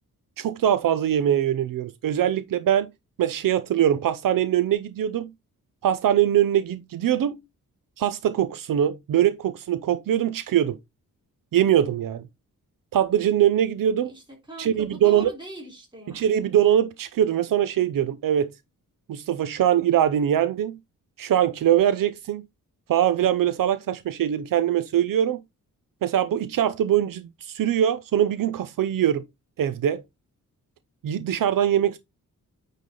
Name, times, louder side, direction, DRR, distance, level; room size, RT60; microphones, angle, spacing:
voice 1, 0.4-2.9 3.2-5.3 5.8-7.4 8.0-10.8 11.5-12.2 12.9-14.1 14.6-15.3 16.1-18.5 19.1-20.8 21.2-22.4 22.9-25.4 26.0-29.2 29.6-30.0 31.0-32.0, right 10 dB, 75° right, 0.7 m, -22 dB
voice 2, 14.0-16.4, right 1 dB, 15° right, 3.6 m, -41 dB
9.2 x 3.4 x 3.8 m
wide cardioid pair, 145°, 34 cm